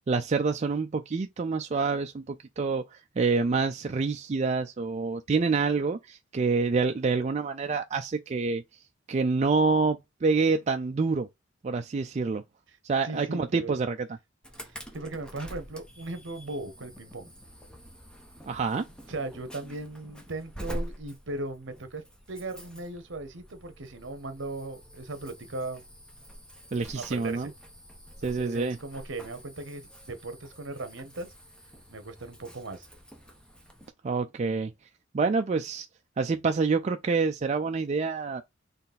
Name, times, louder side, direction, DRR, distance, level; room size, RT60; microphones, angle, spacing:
voice 1, 0.1-8.6 9.1-11.3 11.6-12.4 12.8-14.0 18.5-18.9 26.7-27.5 28.2-28.8 34.0-34.7 35.1-35.9 36.2-38.4, right 4 dB, 35° right, 0.4 m, -27 dB
voice 2, 13.0-13.8 14.9-17.3 19.1-25.9 26.9-27.5 28.2-31.3 31.9-32.9, right 2 dB, 65° right, 1.0 m, -38 dB
Insect / Alarm, 14.4-33.9, equal, 5° left, 0.9 m, -46 dB
4.1 x 3.1 x 4.1 m
head